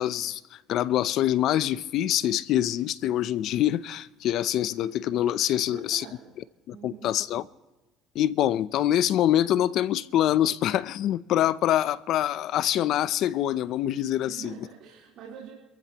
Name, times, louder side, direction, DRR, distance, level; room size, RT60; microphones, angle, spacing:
voice 1, 0.0-6.0 6.7-7.4 8.1-14.5, left 12 dB, 60° left, 0.6 m, -25 dB
voice 2, 5.5-6.3 6.7-7.1 14.2-15.5, right 7 dB, 55° right, 3.6 m, -45 dB
28.0 x 14.5 x 3.0 m
cardioid pair, 120°, 0 cm